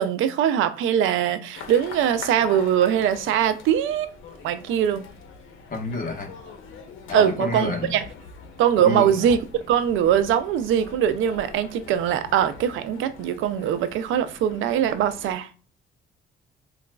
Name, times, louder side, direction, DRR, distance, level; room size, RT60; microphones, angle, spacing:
voice 1, 0.0-4.1 4.4-5.0 7.1-8.0 8.6-9.4 9.7-15.5, right 9 dB, 85° right, 0.4 m, -22 dB
sound 1, 1.5-15.3, left 5 dB, 85° left, 0.7 m, -43 dB
voice 2, 5.7-6.3 7.1-7.9 8.8-9.2, left 2 dB, 45° left, 1.0 m, -28 dB
3.9 x 2.4 x 2.2 m
cardioid pair, 90°, 20 cm